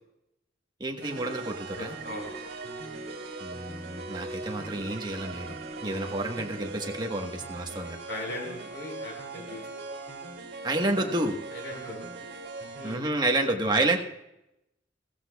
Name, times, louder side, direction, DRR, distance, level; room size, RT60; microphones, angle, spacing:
voice 1, 0.8-1.9 3.4-5.5 5.8-8.0 10.6-11.4 12.8-14.0, right 2 dB, 25° right, 3 dB, 1.3 m, -29 dB
sound 1, 1.0-13.0, right 3 dB, 65° right, 2.6 m, -40 dB
voice 2, 1.7-2.4 5.8-6.2 8.1-9.6 11.5-12.2 12.8-13.0, left 1 dB, 75° left, 1 dB, 4.7 m, -39 dB
16.5 x 14.5 x 2.3 m, 0.87 s
head